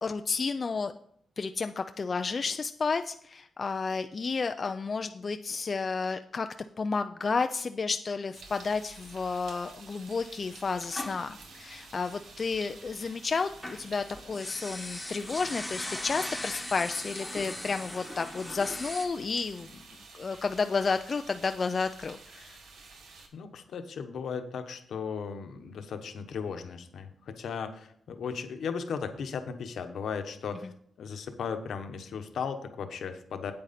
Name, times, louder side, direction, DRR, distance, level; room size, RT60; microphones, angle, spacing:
voice 1, 0.0-0.9 1.4-6.5 6.8-19.7 20.1-22.6, left 4 dB, 35° left, 8 dB, 0.3 m, -31 dB
sound 1, 8.4-23.3, right 3 dB, 80° right, 1.5 m, -51 dB
sound 2, 10.8-12.6 13.0-19.1, left 1 dB, 5° left, 1.2 m, -39 dB
voice 2, 23.3-30.7 31.0-33.5, left 6 dB, 70° left, 7 dB, 1.0 m, -36 dB
8.8 x 8.6 x 4.2 m, 0.65 s
wide cardioid pair, 160°, 0 cm